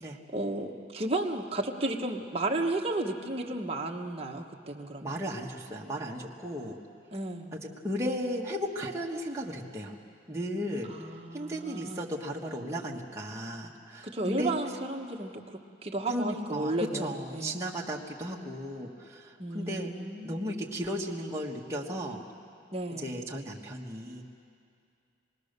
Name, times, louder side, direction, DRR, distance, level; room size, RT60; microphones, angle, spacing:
voice 1, 0.3-5.2 7.1-7.5 10.9-12.1 14.0-17.6 19.4-20.5 22.7-23.1, right 2 dB, 30° right, 0 dB, 1.3 m, -33 dB
voice 2, 5.0-6.8 7.6-10.0 10.3-10.9 11.3-14.5 16.1-19.9 20.2-22.2 23.0-24.2, equal, 15° right, -3 dB, 1.5 m, -35 dB
26.0 x 20.0 x 6.8 m, 2.4 s
head